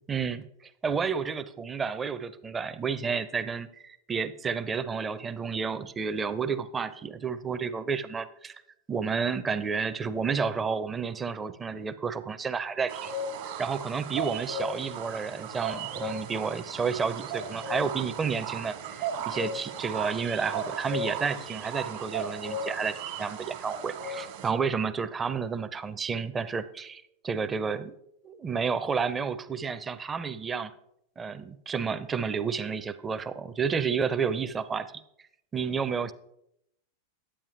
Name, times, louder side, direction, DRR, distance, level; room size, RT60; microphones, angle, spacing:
voice 1, 0.1-0.4 0.8-8.6 8.9-13.1 13.6-27.9 28.2-30.7 31.2-34.9 35.5-36.1, right 5 dB, 20° right, 13 dB, 0.6 m, -31 dB
sound 1, 12.9-24.5, right 3 dB, 55° right, 1.4 m, -36 dB
10.0 x 8.7 x 3.3 m, 0.77 s
figure-of-eight pair, 90°, 0 cm